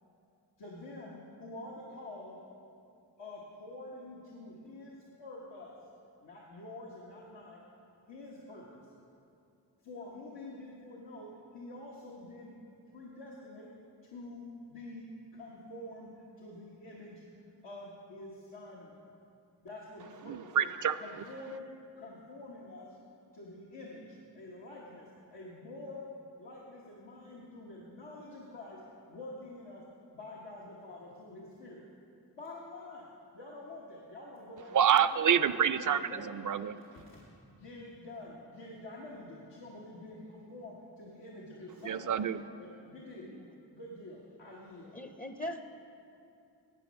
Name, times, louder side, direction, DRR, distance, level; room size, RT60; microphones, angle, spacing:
voice 1, 0.6-2.4 3.2-5.7 6.2-7.6 8.1-8.8 9.8-12.5 12.9-13.7 14.1-15.1 15.3-17.2 17.6-18.9 19.6-20.7 21.0-21.7 22.0-23.0 23.3-26.1 26.4-28.8 29.1-29.8 30.1-31.8 32.3-35.4 35.8-36.3 37.1-42.2 42.6-43.3 43.7-44.9, left 2 dB, 90° left, -5 dB, 1.2 m, -47 dB
voice 2, 20.3-21.0 34.7-36.8 41.8-42.4, right 8 dB, 50° right, 14 dB, 0.5 m, -27 dB
voice 3, 44.9-45.6, left 1 dB, 20° left, 7 dB, 0.6 m, -40 dB
12.0 x 8.5 x 5.2 m, 2.6 s
cardioid pair, 40°, 42 cm